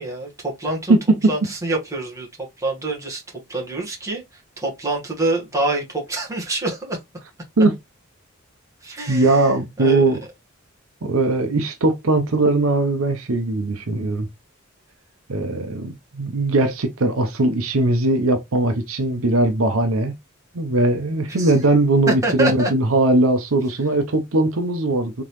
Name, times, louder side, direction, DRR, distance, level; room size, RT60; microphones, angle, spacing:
voice 1, 0.0-1.0 1.3-2.3 2.6-7.0 8.8-10.0 21.3-21.5 22.1-22.7, right 2 dB, 15° right, 1.5 m, -26 dB
voice 2, 0.9-1.3 7.6-7.7 9.1-10.2 11.0-14.3 15.3-20.1 20.5-25.2, right 2 dB, 70° right, 0.8 m, -19 dB
3.8 x 3.8 x 3.1 m
head